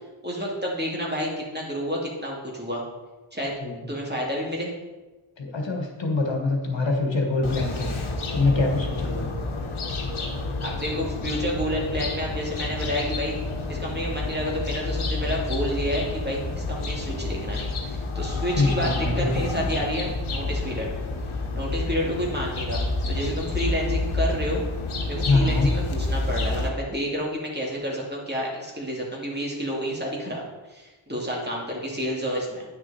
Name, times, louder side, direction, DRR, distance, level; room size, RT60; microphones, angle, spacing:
voice 1, 0.2-2.8 3.3-3.5 3.9-4.7 10.6-13.3 13.7-20.9 21.5-24.6 25.1-32.6, equal, 20° right, -3 dB, 2.4 m, -30 dB
voice 2, 5.4-8.0 8.3-9.4 18.5-19.8 25.3-25.7, left 3 dB, 65° left, 1 dB, 1.4 m, -24 dB
sound 1, 7.4-26.7, left 2 dB, 90° left, 1.1 m, -29 dB
9.7 x 6.2 x 4.2 m, 1.2 s
wide cardioid pair, 50°, 47 cm